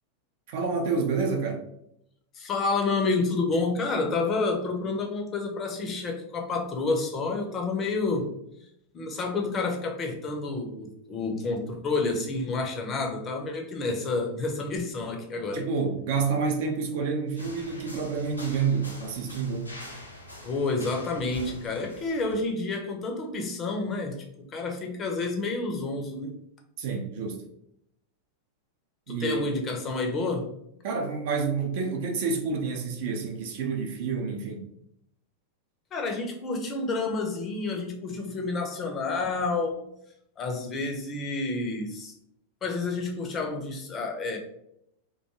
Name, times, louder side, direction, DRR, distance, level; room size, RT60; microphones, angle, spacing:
voice 1, 0.5-1.6 15.5-19.7 26.8-27.4 29.1-29.4 30.8-34.6, right 5 dB, 50° right, 0.5 m, -28 dB
voice 2, 2.3-8.3 8.9-15.6 20.4-24.2 24.5-26.3 29.1-30.5 35.9-39.7 40.4-42.1 42.6-44.4, left 3 dB, 25° left, 0.5 m, -29 dB
sound 1, 17.3-22.4, left 1 dB, 85° left, 0.5 m, -44 dB
2.5 x 2.3 x 2.8 m
figure-of-eight pair, 90°, 0 cm